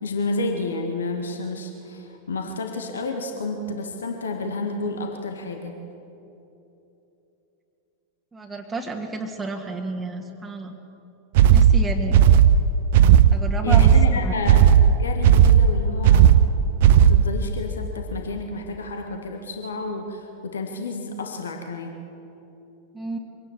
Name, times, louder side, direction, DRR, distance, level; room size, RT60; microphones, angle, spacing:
voice 1, 0.0-5.7 13.6-16.3 17.0-21.9, left 3 dB, 70° left, 4 dB, 1.8 m, -30 dB
voice 2, 8.3-10.7 11.5-12.2 13.3-13.9 14.2-14.4 22.9-23.2, right 3 dB, 10° right, 0 dB, 1.8 m, -31 dB
sound 1, 11.4-17.4, right 9 dB, 50° right, 0.7 m, -14 dB
24.5 x 17.5 x 7.4 m, 3.0 s
figure-of-eight pair, 90°, 0 cm